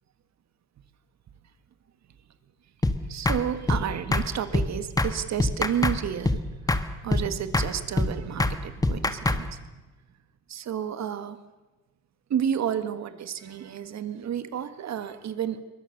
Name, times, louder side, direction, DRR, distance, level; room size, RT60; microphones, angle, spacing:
sound 1, 2.8-3.0 3.3-3.4 3.7-3.8 4.1-4.3 4.5-4.7 5.0-5.1 5.4-6.0 6.2-6.4 6.7-6.8 7.1-7.3 7.5-7.7 8.0-8.1 8.4-8.6 8.8-9.4, left 2 dB, 10° left, 1.5 m, -23 dB
voice 1, 3.1-6.4 6.7-9.6 10.5-11.4 12.3-15.6, right 9 dB, 60° right, 11 dB, 1.8 m, -31 dB
23.0 x 20.5 x 6.8 m, 1.2 s
cardioid pair, 90°, 30 cm